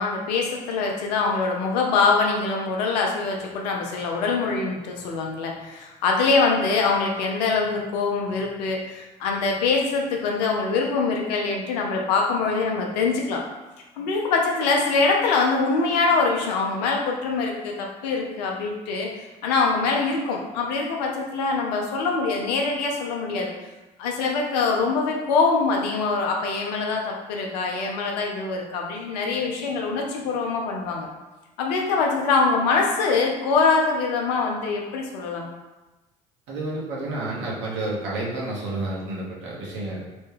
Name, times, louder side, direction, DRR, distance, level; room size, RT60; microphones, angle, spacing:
voice 1, 0.0-13.4 14.0-19.1 19.4-23.5 24.0-31.1 31.6-35.5, left 4 dB, 80° left, 0 dB, 0.6 m, -24 dB
voice 2, 36.5-40.0, right 2 dB, 65° right, -4 dB, 1.0 m, -30 dB
3.0 x 2.2 x 3.2 m, 1.1 s
hypercardioid pair, 60°, 21 cm